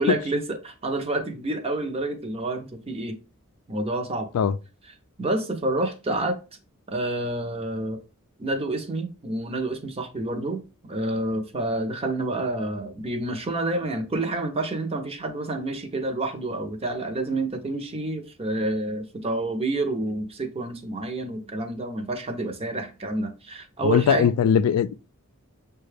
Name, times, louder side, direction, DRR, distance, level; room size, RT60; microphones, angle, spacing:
voice 1, 0.0-3.2 3.7-4.3 5.2-6.4 6.9-8.0 8.4-24.3, right 2 dB, 30° right, 0.7 m, -28 dB
voice 2, 23.8-24.9, left 7 dB, 85° left, 0.3 m, -20 dB
6.4 x 2.3 x 3.3 m
head